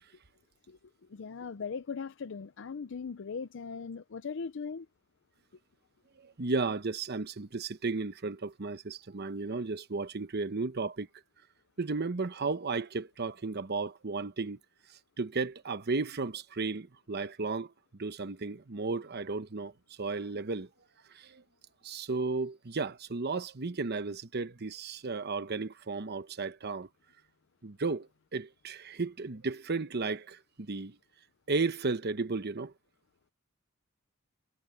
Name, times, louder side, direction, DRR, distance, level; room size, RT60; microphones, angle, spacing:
voice 1, 1.1-4.9, left 5 dB, 65° left, 0.5 m, -39 dB
voice 2, 6.2-11.1 11.8-14.6 15.2-17.7 18.0-19.7 20.0-20.7 21.1-21.4 21.8-26.9 27.6-31.0 31.5-32.7, right 3 dB, 50° right, 1.0 m, -34 dB
head